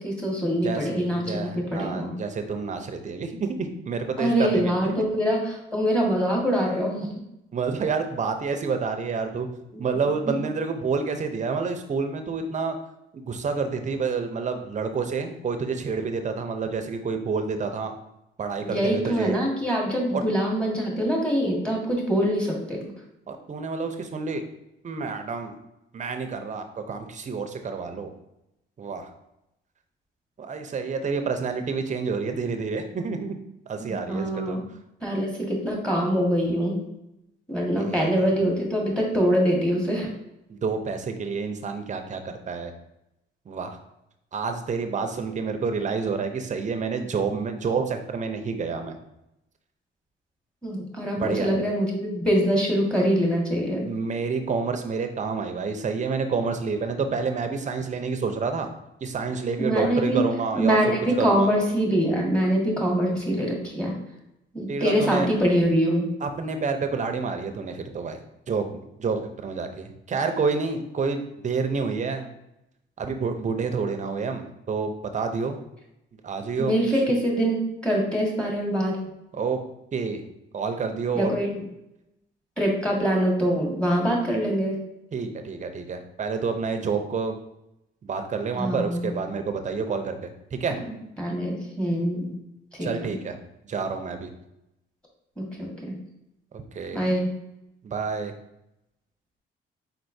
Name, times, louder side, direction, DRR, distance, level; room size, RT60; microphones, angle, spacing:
voice 1, 0.0-2.1 4.2-7.1 9.7-10.3 18.6-22.9 33.8-34.6 35.0-36.8 37.5-40.1 50.6-53.9 59.6-60.2 60.5-64.0 64.5-66.2 76.6-79.0 81.1-81.6 82.6-84.8 88.5-89.1 90.7-92.4 92.8-93.1 95.4-95.9 96.9-97.3, equal, 5° left, -1 dB, 1.6 m, -24 dB
voice 2, 0.6-5.0 7.5-9.5 9.8-12.8 13.1-17.9 18.4-19.4 20.1-20.2 23.3-24.4 24.8-25.5 25.9-28.1 28.8-29.1 30.4-33.4 33.7-34.6 37.7-38.3 40.5-42.7 43.5-43.8 44.3-49.0 51.2-51.5 53.8-58.7 59.0-61.5 64.7-65.3 66.2-68.7 69.0-72.3 73.0-75.6 76.2-76.8 79.3-79.6 79.9-80.2 80.5-81.3 85.1-87.4 88.0-90.8 92.8-93.4 93.7-94.3 96.5-97.0 97.8-98.3, right 5 dB, 35° right, 6 dB, 0.7 m, -28 dB
4.3 x 4.2 x 2.7 m, 0.87 s
cardioid pair, 90°, 20 cm